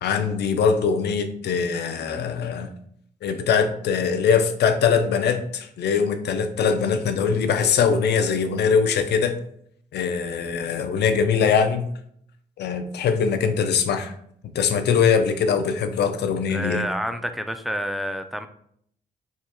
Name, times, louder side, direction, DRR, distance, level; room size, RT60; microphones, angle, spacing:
voice 1, 0.0-2.7 3.2-9.4 9.9-11.9 12.6-14.1 14.5-16.8, left 6 dB, 65° left, 8 dB, 0.5 m, -22 dB
voice 2, 16.5-18.5, equal, ahead, 8 dB, 0.4 m, -28 dB
4.7 x 2.8 x 2.3 m, 0.68 s
supercardioid pair, 65°, 19 cm